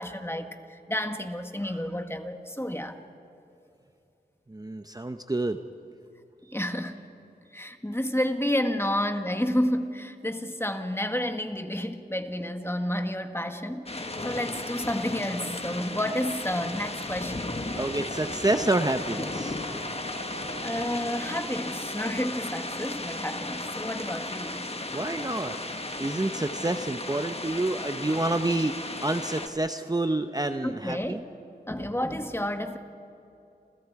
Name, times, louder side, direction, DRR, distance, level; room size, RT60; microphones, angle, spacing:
voice 1, 0.0-3.0 6.5-7.0 7.5-17.6 20.6-24.6 30.6-31.2 31.7-32.8, left 1 dB, 15° left, 6 dB, 1.6 m, -30 dB
voice 2, 4.5-5.6 17.7-19.6 24.9-25.6 26.0-31.2, right 2 dB, 20° right, 8 dB, 0.8 m, -28 dB
sound 1, 13.9-29.5, left 2 dB, 35° left, 1.6 m, -35 dB
Wind instrument woodwind instrument, 17.7-21.9, right 1 dB, 90° right, 5.9 m, -45 dB
28.5 x 28.0 x 4.8 m, 2.8 s
wide cardioid pair, 70°, 17 cm